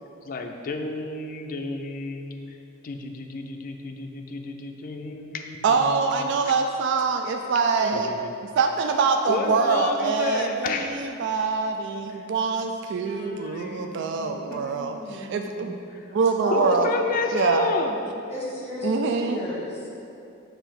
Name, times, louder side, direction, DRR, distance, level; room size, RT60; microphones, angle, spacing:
voice 1, 0.2-2.6 2.8-6.3 7.9-8.3 9.3-11.0 12.2-12.3 13.0-16.0 16.5-18.0, left 3 dB, 45° left, 4 dB, 0.4 m, -31 dB
voice 2, 5.6-8.1 8.6-15.7 16.1-16.9 17.3-17.7 18.8-19.4, right 4 dB, 60° right, 4 dB, 0.3 m, -24 dB
voice 3, 16.4-16.9 18.3-19.9, left 1 dB, 10° left, -6 dB, 1.1 m, -32 dB
6.9 x 2.7 x 5.7 m, 2.7 s
head